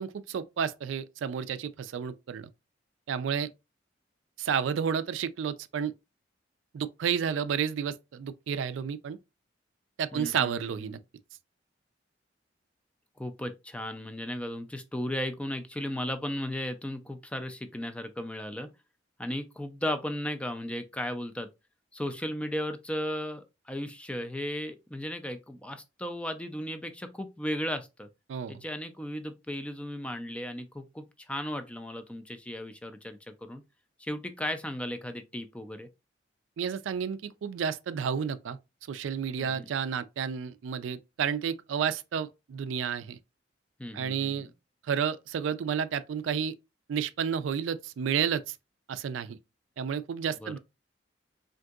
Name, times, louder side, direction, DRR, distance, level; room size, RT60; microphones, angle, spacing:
voice 1, 0.0-2.5 3.1-3.5 4.4-5.9 6.7-9.2 10.0-11.0 28.3-28.6 36.6-38.6 38.9-43.2 43.9-44.5 44.9-46.5 46.9-48.5 48.9-49.4 49.8-50.6, right 7 dB, 90° right, 0.3 m, -31 dB
voice 2, 10.1-11.0 13.2-18.7 19.2-21.5 21.9-28.1 28.5-33.6 34.0-35.9 39.4-39.7 43.8-44.5 50.4-50.6, left 1 dB, 5° left, 0.3 m, -35 dB
3.6 x 2.6 x 2.3 m
head